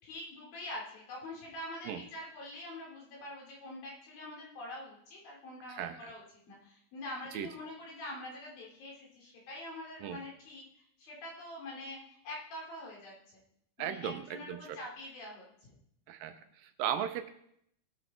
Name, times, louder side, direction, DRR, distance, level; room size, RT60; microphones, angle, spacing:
voice 1, 0.0-13.4 13.8-15.4, left 1 dB, 70° left, -3 dB, 5.0 m, -45 dB
voice 2, 5.7-6.1 7.3-7.5 10.0-10.2 13.8-14.8 16.1-17.3, right 10 dB, 75° right, 9 dB, 2.3 m, -37 dB
19.0 x 6.7 x 4.4 m, 0.71 s
omnidirectional pair, 4.3 m